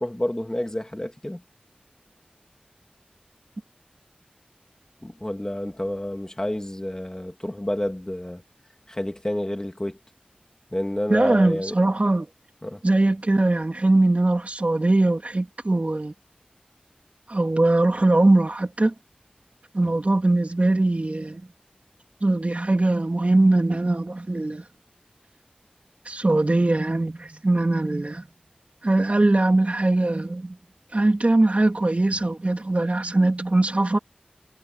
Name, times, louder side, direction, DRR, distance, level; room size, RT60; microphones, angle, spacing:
voice 1, 0.0-1.4 5.0-8.4 8.9-10.0 10.7-11.7 12.6-12.8, left 1 dB, 20° left, 2.7 m, -29 dB
voice 2, 11.1-12.3 12.8-16.1 17.3-18.9 19.7-21.4 22.2-24.6 26.0-28.3 28.8-30.6 30.9-34.0, right 2 dB, 50° right, 3.3 m, -21 dB
wide cardioid pair, 40°, 3 cm